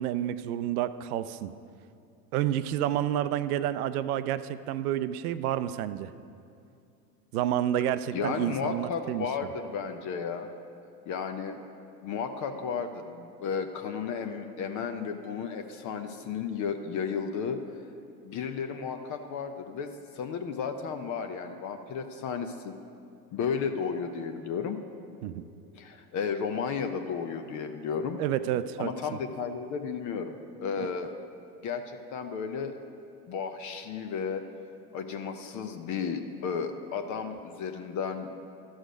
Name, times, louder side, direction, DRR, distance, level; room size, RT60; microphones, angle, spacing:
voice 1, 0.0-1.5 2.3-6.1 7.3-9.3 25.2-25.4 28.2-28.9, right 11 dB, 65° right, 13 dB, 0.5 m, -29 dB
voice 2, 8.1-10.5 11.1-11.6 12.0-17.6 18.2-22.7 23.3-24.8 25.8-28.2 28.8-30.4 30.6-31.1 31.6-32.8 33.3-34.4 34.9-38.3, left 6 dB, 40° left, 7 dB, 0.6 m, -33 dB
13.0 x 6.4 x 5.1 m, 2.5 s
hypercardioid pair, 80°, 49 cm